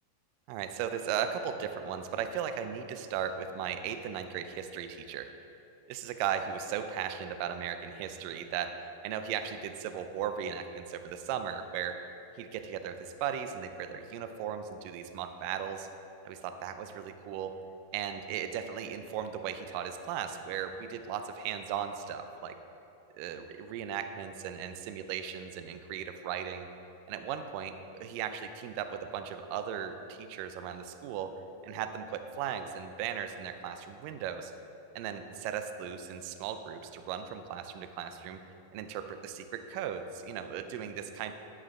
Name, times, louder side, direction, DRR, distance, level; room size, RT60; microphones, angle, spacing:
voice 1, 0.5-5.3 5.9-8.7 9.0-12.0 12.4-15.9 16.2-17.5 17.9-22.6 23.1-26.7 27.1-31.3 31.6-34.5 35.0-38.4 38.7-41.3, right 8 dB, 90° right, 8 dB, 1.9 m, -37 dB
11.5 x 5.0 x 5.9 m, 3.0 s
omnidirectional pair, 4.5 m